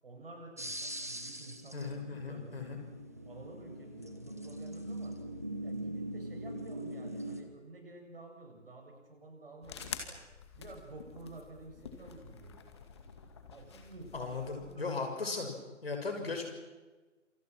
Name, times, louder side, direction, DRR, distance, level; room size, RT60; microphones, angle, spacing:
voice 1, 0.0-2.6 3.3-5.2 5.6-10.2 10.6-12.6 13.5-15.0, right 2 dB, 45° right, 3 dB, 7.4 m, -51 dB
sound 1, 0.6-7.4, right 1 dB, 15° right, 0.7 m, -42 dB
voice 2, 1.7-2.8 14.1-15.5 15.8-16.5, left 4 dB, 50° left, 4 dB, 6.6 m, -37 dB
sound 2, 9.6-14.8, left 6 dB, 20° left, 2.2 m, -48 dB
28.0 x 26.5 x 6.2 m, 1.2 s
figure-of-eight pair, 155°, 38 cm